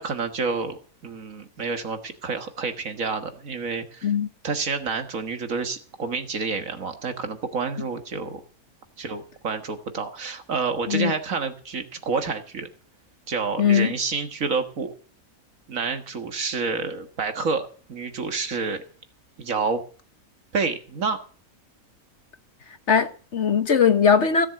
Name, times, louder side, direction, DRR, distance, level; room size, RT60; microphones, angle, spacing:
voice 1, 0.0-4.1 4.4-8.4 9.0-12.7 13.3-14.9 15.7-18.8 19.4-19.8 20.5-21.2, right 4 dB, 60° right, 1.9 m, -29 dB
voice 2, 13.6-13.9 22.9-24.5, left 7 dB, 50° left, 1.3 m, -20 dB
16.5 x 7.1 x 7.6 m
omnidirectional pair, 1.6 m